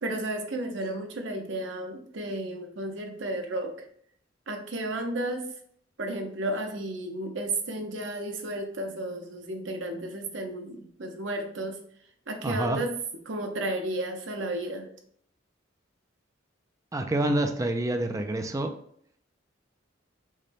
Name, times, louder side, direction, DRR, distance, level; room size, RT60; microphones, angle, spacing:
voice 1, 0.0-3.8 4.5-5.5 6.0-11.8 12.3-13.0 13.3-14.9, right 1 dB, 70° right, 4 dB, 0.8 m, -33 dB
voice 2, 12.4-12.8 16.9-18.7, right 1 dB, 15° right, 5 dB, 0.4 m, -27 dB
6.4 x 2.2 x 3.4 m, 0.64 s
head